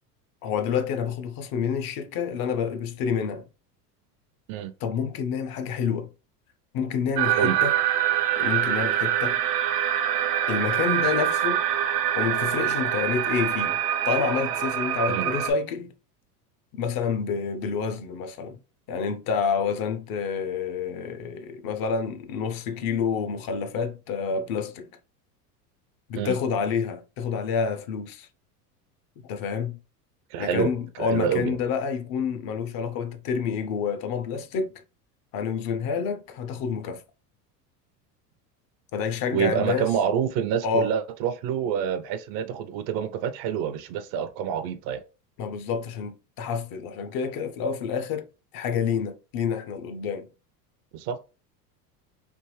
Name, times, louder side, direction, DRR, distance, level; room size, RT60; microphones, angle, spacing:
voice 1, 0.4-3.5 4.8-6.1 6.7-7.8 8.4-9.4 10.5-11.6 12.2-13.8 14.0-15.9 16.7-18.6 18.9-24.9 26.1-28.3 29.3-29.8 30.4-34.8 35.3-37.0 38.9-39.9 40.6-40.9 45.4-48.3 48.5-50.3, left 6 dB, 50° left, 0.6 m, -28 dB
sound 1, 7.2-15.5, right 11 dB, 85° right, 0.7 m, -25 dB
voice 2, 30.3-30.7 31.0-31.6 39.3-45.0 50.9-51.2, right 8 dB, 50° right, 0.5 m, -27 dB
3.4 x 2.5 x 3.1 m
hypercardioid pair, 95°, 47 cm